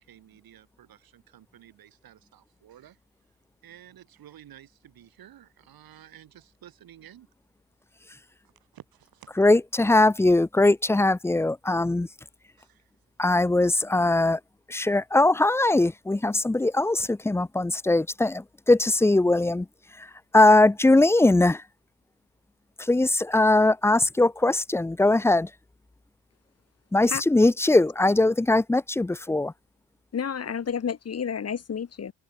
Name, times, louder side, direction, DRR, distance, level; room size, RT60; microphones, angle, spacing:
voice 1, 0.0-3.0 3.6-7.3 8.7-9.3 12.6-12.9, right 11 dB, 60° right, 3.7 m, -52 dB
voice 2, 9.4-12.1 13.2-14.4 14.7-19.7 20.0-20.1 20.3-21.6 22.8-25.5 26.9-29.5, left 2 dB, 5° left, 0.5 m, -21 dB
voice 3, 30.1-32.1, left 7 dB, 40° left, 2.2 m, -30 dB
supercardioid pair, 85°, 40 cm